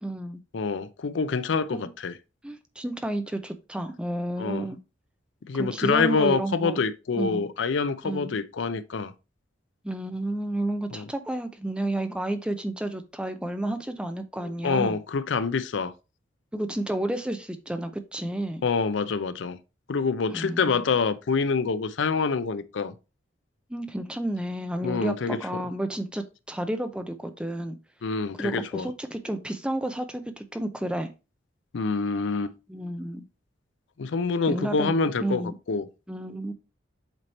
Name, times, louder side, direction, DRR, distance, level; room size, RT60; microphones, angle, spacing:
voice 1, 0.0-0.4 1.7-1.9 2.4-4.8 5.5-6.8 7.2-7.5 8.0-8.3 9.8-15.0 16.5-18.7 20.3-20.9 23.7-27.8 28.4-31.1 32.7-33.2 34.5-35.5 36.1-36.5, right 1 dB, 5° right, 0.5 m, -31 dB
voice 2, 0.5-2.1 4.4-4.7 5.5-9.1 10.9-11.1 14.4-15.9 18.6-19.6 19.9-22.9 24.8-25.6 28.0-28.9 31.7-32.5 34.0-35.4 35.7-35.9, left 4 dB, 70° left, 0.5 m, -26 dB
7.9 x 3.0 x 4.1 m
head